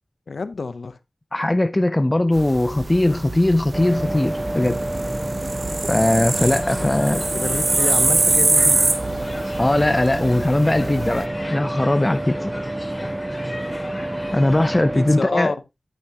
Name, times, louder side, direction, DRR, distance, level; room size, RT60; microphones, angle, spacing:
voice 1, 0.3-1.0 6.4-8.9 14.9-15.6, left 4 dB, 75° left, 0.9 m, -29 dB
voice 2, 1.3-4.8 5.9-7.2 9.6-12.5 14.3-15.5, left 1 dB, 25° left, 0.5 m, -20 dB
sound 1, 2.3-11.2, right 3 dB, 50° right, 1.0 m, -24 dB
sound 2, 3.7-15.2, right 1 dB, 20° right, 0.5 m, -28 dB
sound 3, 6.3-15.1, left 2 dB, 40° left, 3.0 m, -38 dB
12.0 x 6.1 x 3.0 m
wide cardioid pair, 60°, 0 cm